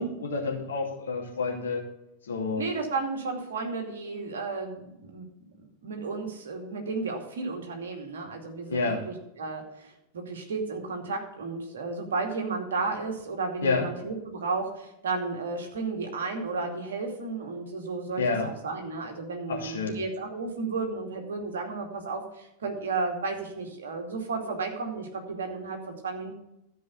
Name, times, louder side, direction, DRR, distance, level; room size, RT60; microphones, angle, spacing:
voice 1, 0.0-1.9 2.2-2.6 8.7-9.0 13.6-13.9 18.2-18.5 19.5-20.0, left 4 dB, 65° left, 0 dB, 2.5 m, -29 dB
voice 2, 2.6-5.3 5.8-25.8 26.0-26.3, right 4 dB, 65° right, 2 dB, 2.5 m, -33 dB
13.0 x 5.3 x 6.9 m, 0.86 s
figure-of-eight pair, 90°, 0 cm